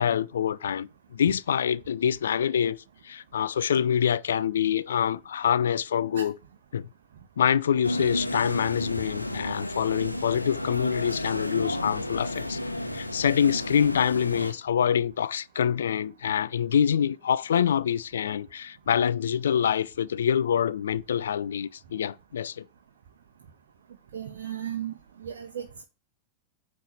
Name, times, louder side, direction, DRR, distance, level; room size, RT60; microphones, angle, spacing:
voice 1, 0.0-6.3 6.7-6.9 7.4-12.6 12.9-22.6, left 8 dB, 65° left, 0.3 m, -26 dB
sound 1, 7.8-14.5, left 1 dB, 85° left, 0.9 m, -32 dB
voice 2, 24.1-24.9 25.2-25.8, right 9 dB, 60° right, 0.9 m, -35 dB
9.2 x 3.3 x 5.3 m
figure-of-eight pair, 90°, 0 cm